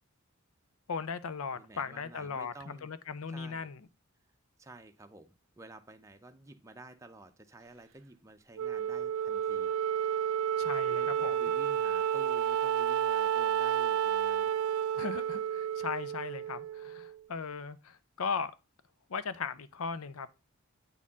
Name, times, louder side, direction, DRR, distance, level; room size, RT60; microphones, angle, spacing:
voice 1, 0.9-3.9 10.6-11.4 15.0-18.5 19.1-20.3, left 5 dB, 75° left, 0.6 m, -38 dB
voice 2, 1.5-2.9 3.3-3.7 4.6-9.7 11.0-14.5, right 2 dB, 15° right, 0.6 m, -52 dB
Wind instrument woodwind instrument, 8.6-17.1, right 9 dB, 75° right, 0.3 m, -31 dB
8.5 x 4.2 x 3.6 m
head